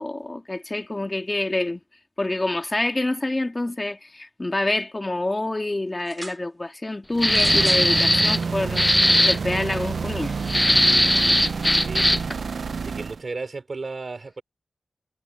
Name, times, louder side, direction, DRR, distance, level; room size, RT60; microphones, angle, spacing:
voice 1, 0.0-1.8 2.2-10.3, left 2 dB, 30° left, 2.3 m, -27 dB
sound 1, 6.0-6.4 7.3-7.9 8.8-8.9, right 2 dB, 30° right, 4.5 m, -37 dB
sound 2, 7.1-13.2, right 5 dB, 75° right, 0.7 m, -29 dB
sound 3, 7.2-8.4 8.8-9.4 10.5-12.3, left 1 dB, 10° left, 0.3 m, -19 dB
voice 2, 11.8-12.2 12.8-14.4, right 3 dB, 55° right, 4.6 m, -34 dB
cardioid pair, 55°, 0 cm